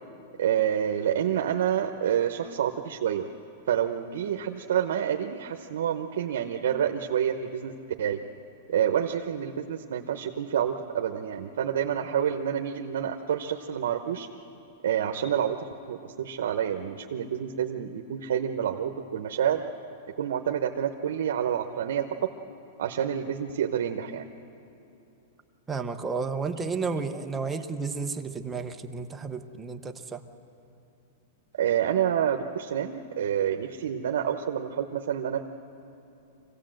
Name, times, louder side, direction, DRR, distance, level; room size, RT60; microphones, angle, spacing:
voice 1, 0.4-3.3 3.7-8.2 8.7-14.3 14.8-19.6 20.2-22.1 22.8-24.2 31.6-35.5, right 9 dB, 80° right, 3 dB, 0.9 m, -28 dB
voice 2, 25.7-30.2, right 4 dB, 10° right, 5 dB, 0.7 m, -32 dB
25.5 x 17.0 x 7.7 m, 2.9 s
supercardioid pair, 165°, 0 cm